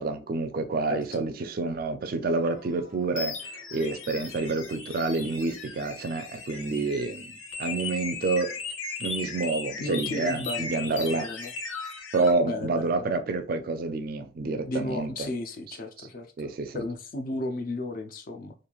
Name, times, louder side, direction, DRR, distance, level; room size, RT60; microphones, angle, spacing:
voice 1, 0.0-8.5 9.0-11.3 12.1-15.3 16.0-16.1 16.4-16.8, right 3 dB, 50° right, 0.4 m, -28 dB
voice 2, 0.9-1.2 9.8-11.5 12.4-13.1 14.6-18.5, left 2 dB, 45° left, 0.4 m, -34 dB
sound 1, 2.3-12.3, left 4 dB, 85° left, 0.6 m, -37 dB
3.0 x 2.5 x 2.3 m
head